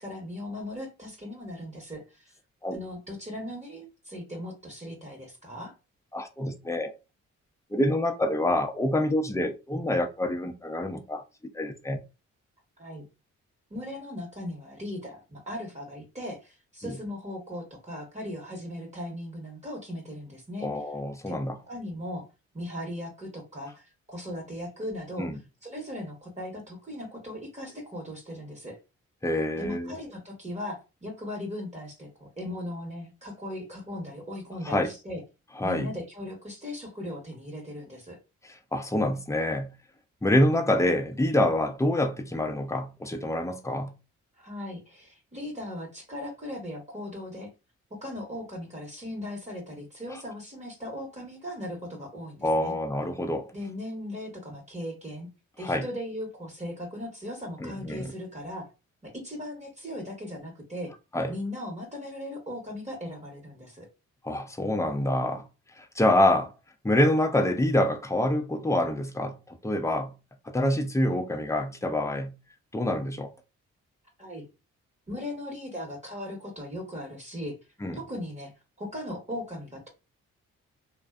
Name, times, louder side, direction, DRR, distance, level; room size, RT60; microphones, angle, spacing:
voice 1, 0.0-2.3 2.7-5.7 12.8-13.0 13.7-20.7 21.3-21.4 21.7-22.3 22.5-25.3 25.6-28.8 29.5-35.2 35.6-38.2 44.4-47.5 48.0-52.7 53.5-55.3 55.6-58.7 59.0-60.9 61.3-63.9 74.2-74.4 75.1-77.6 77.9-78.5 78.8-79.9, left 1 dB, 20° right, 1.0 m, -38 dB
voice 2, 6.1-6.9 7.7-11.2 11.5-12.0 16.8-17.0 20.6-21.6 25.2-25.3 29.2-29.9 34.6-34.9 35.6-35.9 38.4-39.7 40.2-43.9 50.1-50.2 52.4-53.5 55.6-55.8 57.6-58.1 61.1-61.3 64.2-65.5 65.8-66.5 66.8-70.1 70.5-72.3 72.7-73.3 77.8-78.0, left 1 dB, 10° left, 0.5 m, -26 dB
2.4 x 2.1 x 2.3 m
supercardioid pair, 45°, 33 cm